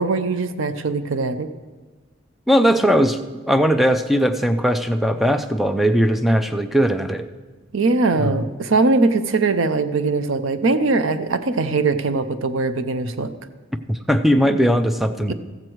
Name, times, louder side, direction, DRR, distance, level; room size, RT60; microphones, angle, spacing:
voice 1, 0.0-1.5 7.7-13.3 15.3-15.4, right 3 dB, 65° right, 11 dB, 0.6 m, -21 dB
voice 2, 2.5-3.2 3.5-7.2 8.2-8.4 13.9-15.3, equal, ahead, 9 dB, 0.4 m, -19 dB
14.5 x 8.0 x 4.5 m, 1.4 s
head